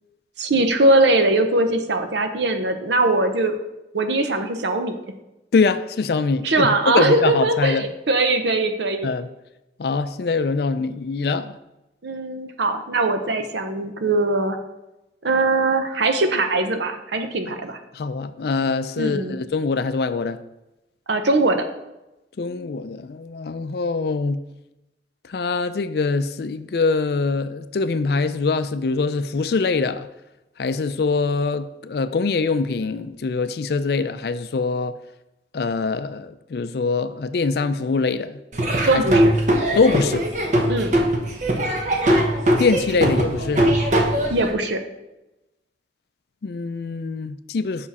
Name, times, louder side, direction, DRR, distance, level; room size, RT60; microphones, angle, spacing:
voice 1, 0.4-3.6 3.9-4.9 6.4-9.1 12.0-14.6 15.2-17.8 19.0-19.3 21.1-21.6 38.9-39.3 40.7-40.9 44.3-44.8, right 2 dB, 75° right, 0.8 m, -21 dB
voice 2, 5.5-6.7 6.9-7.8 9.0-9.3 9.8-11.6 17.9-20.4 22.4-24.4 25.3-30.1 30.6-35.0 35.5-38.4 38.9-39.0 39.8-40.2 42.6-43.7 46.4-47.9, left 4 dB, 60° left, 0.4 m, -23 dB
Laughter / Drum, 38.5-44.5, right 1 dB, 40° right, 0.9 m, -20 dB
7.2 x 5.8 x 4.2 m
head